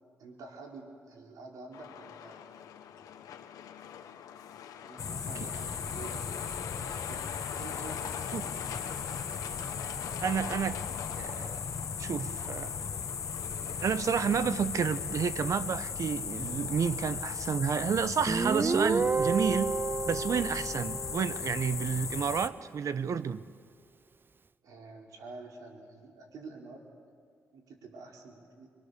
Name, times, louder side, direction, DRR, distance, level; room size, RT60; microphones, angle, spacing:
voice 1, 0.2-2.4 4.8-8.8 24.6-26.8 27.5-28.7, right 3 dB, 85° right, 0 dB, 4.1 m, -48 dB
Truck, 1.7-17.6, left 9 dB, 90° left, 1.3 m, -44 dB
sound 1, 5.0-22.5, left 6 dB, 60° left, 1.3 m, -37 dB
voice 2, 10.2-10.8 11.2-11.7 12.0-12.7 13.8-19.7 20.1-23.4, right 7 dB, 65° right, 14 dB, 1.0 m, -30 dB
Guitar, 18.3-21.7, right 4 dB, 35° right, 0.5 m, -30 dB
25.0 x 24.5 x 6.8 m, 2.2 s
cardioid pair, 65°, 6 cm